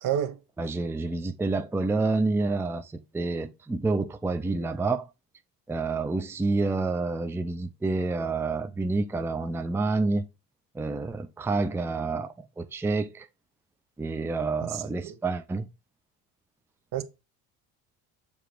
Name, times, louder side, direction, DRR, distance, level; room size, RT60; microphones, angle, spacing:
voice 1, 0.0-0.4 14.7-15.1 16.9-17.0, right 10 dB, 60° right, 1.1 m, -29 dB
voice 2, 0.6-5.1 5.7-10.3 10.7-13.3 14.0-15.7, right 3 dB, 5° right, 0.5 m, -28 dB
7.1 x 3.0 x 5.0 m
cardioid pair, 105°, 38 cm